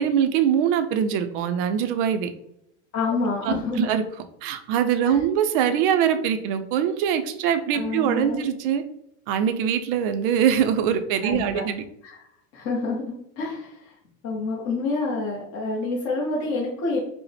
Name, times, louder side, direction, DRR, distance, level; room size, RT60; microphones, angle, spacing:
voice 1, 0.0-2.3 3.4-4.0 4.4-8.8 9.3-11.8, right 8 dB, 45° right, 9 dB, 0.4 m, -23 dB
voice 2, 2.9-3.9 5.1-5.2 7.7-8.4 11.2-11.6 12.0-12.2 12.5-13.9 14.2-17.0, left 3 dB, 35° left, -5 dB, 0.8 m, -28 dB
4.7 x 2.1 x 3.3 m, 0.78 s
supercardioid pair, 155°, 41 cm